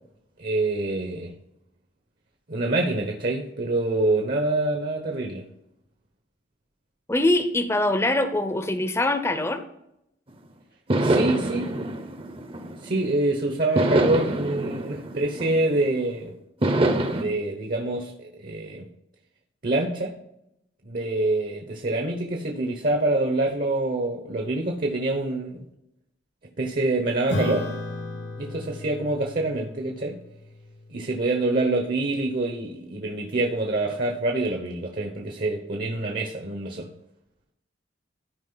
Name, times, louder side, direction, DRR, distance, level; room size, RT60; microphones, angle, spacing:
voice 1, 0.4-1.3 2.5-5.5 11.0-11.7 12.8-16.3 17.1-18.9 19.6-20.1 20.8-25.6 26.6-27.7 28.4-30.2 30.9-36.9, right 2 dB, 55° right, 2 dB, 1.0 m, -26 dB
voice 2, 7.1-9.6, left 1 dB, 15° left, 9 dB, 0.7 m, -23 dB
sound 1, 10.3-10.4 10.9-13.2 13.8-16.0 16.6-17.2, right 1 dB, 30° right, 0.8 m, -25 dB
Acoustic guitar / Strum, 27.3-32.1, left 1 dB, 85° left, 3.7 m, -35 dB
13.0 x 4.9 x 4.0 m, 0.83 s
head